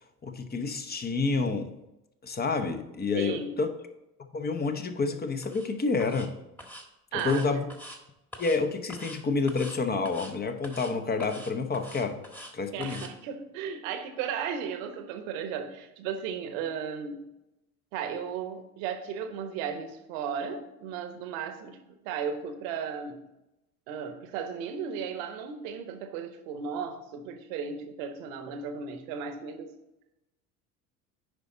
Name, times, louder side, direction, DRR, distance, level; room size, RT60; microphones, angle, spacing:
voice 1, 0.2-1.7 2.2-3.7 4.3-6.3 7.2-7.7 8.4-12.2 12.5-13.0, left 4 dB, 20° left, 7 dB, 0.9 m, -29 dB
voice 2, 3.1-3.5 7.1-7.6 12.7-17.2 17.9-21.8 22.0-23.2 23.9-29.7, right 7 dB, 60° right, 8 dB, 1.2 m, -35 dB
sound 1, 5.4-5.7 6.0-6.3 6.6-6.8 7.2-8.0 8.3-8.6 8.9-9.2 9.5-9.8 10.0-10.3 10.6-10.9 11.2-12.5 12.8-13.1, equal, 5° left, 1.4 m, -44 dB
9.7 x 5.1 x 3.9 m, 0.93 s
figure-of-eight pair, 70°, 45 cm